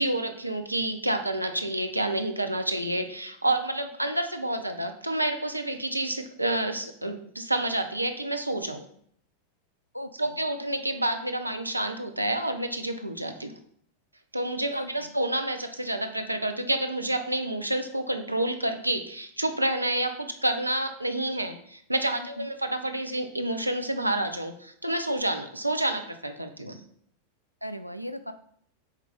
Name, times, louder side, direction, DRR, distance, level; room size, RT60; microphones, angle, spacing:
voice 1, 0.0-8.8 10.2-13.5 14.3-26.8, right 1 dB, 85° right, 6 dB, 0.6 m, -29 dB
voice 2, 9.9-10.4 14.7-15.1 22.2-22.5 27.6-28.3, equal, 90° left, 11 dB, 0.4 m, -38 dB
8.1 x 3.3 x 3.6 m, 0.63 s
figure-of-eight pair, 90°, 0 cm